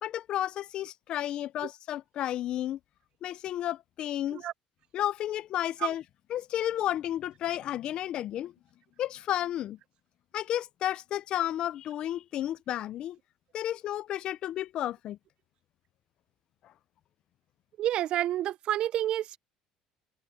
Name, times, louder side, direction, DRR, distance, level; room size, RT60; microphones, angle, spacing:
voice 1, 0.0-2.8 3.2-4.4 4.9-6.0 6.3-8.5 9.0-9.8 10.3-13.2 13.5-15.2 16.6-16.7, left 12 dB, 50° left, 0.4 m, -32 dB
voice 2, 17.8-19.4, right 12 dB, 50° right, 0.3 m, -29 dB
cardioid pair, 140°, 2 cm